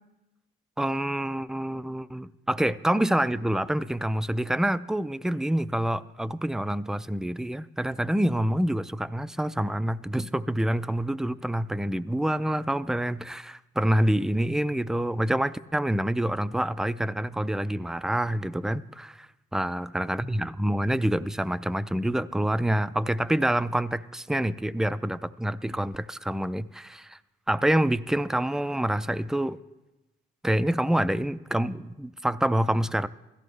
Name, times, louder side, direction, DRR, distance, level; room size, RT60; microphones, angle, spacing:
voice 1, 0.8-27.2 27.5-29.6 30.4-33.1, right 1 dB, 5° right, 14 dB, 0.3 m, -27 dB
16.5 x 13.5 x 3.2 m, 1.0 s
cardioid pair, 90°, 20 cm